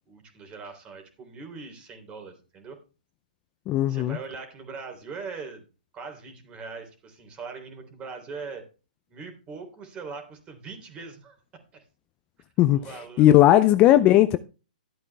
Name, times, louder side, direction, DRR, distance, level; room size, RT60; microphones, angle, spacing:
voice 1, 0.1-2.8 3.9-5.7 5.9-8.6 9.1-11.3 11.7-11.8 12.7-13.4, right 4 dB, 20° right, 3.4 m, -41 dB
voice 2, 3.7-4.2 12.6-12.9 13.2-14.4, left 13 dB, 25° left, 0.6 m, -17 dB
12.5 x 8.4 x 3.5 m
hypercardioid pair, 135°, 5 cm